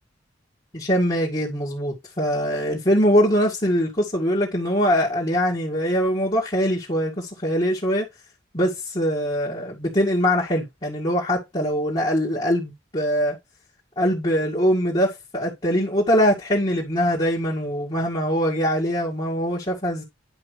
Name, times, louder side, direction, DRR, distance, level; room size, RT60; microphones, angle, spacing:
voice 1, 0.7-8.1 8.5-13.4 14.0-20.0, equal, 30° left, 2.1 m, -22 dB
10.0 x 5.3 x 3.3 m
head